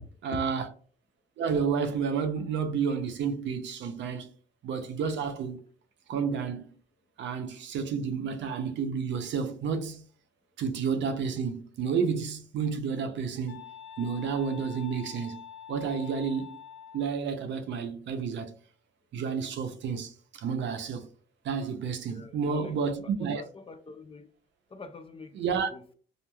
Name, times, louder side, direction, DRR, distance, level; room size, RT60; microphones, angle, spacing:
voice 1, 0.2-0.6 1.4-4.3 4.6-5.6 6.1-6.7 7.2-10.0 10.6-13.6 14.0-15.4 15.7-16.6 16.9-18.5 19.1-21.1 21.4-23.4 25.3-25.7, right 6 dB, 70° right, 0.5 m, -30 dB
sound 1, 13.5-17.1, left 8 dB, 80° left, 0.6 m, -46 dB
voice 2, 22.1-24.3 24.7-25.9, left 4 dB, 30° left, 0.4 m, -44 dB
3.0 x 2.4 x 2.2 m
cardioid pair, 90°, 20 cm